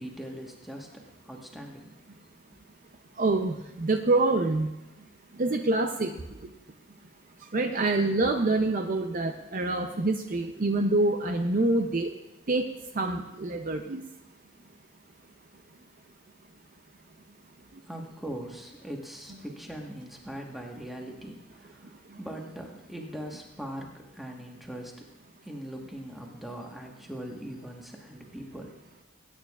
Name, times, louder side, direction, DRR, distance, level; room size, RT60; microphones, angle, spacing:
voice 1, 0.0-1.9 17.8-25.0 25.4-28.7, equal, ahead, 0 dB, 1.3 m, -41 dB
voice 2, 3.2-4.7 5.4-6.1 7.5-12.1 12.5-12.7 13.0-14.0, right 2 dB, 40° right, 5 dB, 0.5 m, -26 dB
19.5 x 9.1 x 2.4 m, 0.94 s
head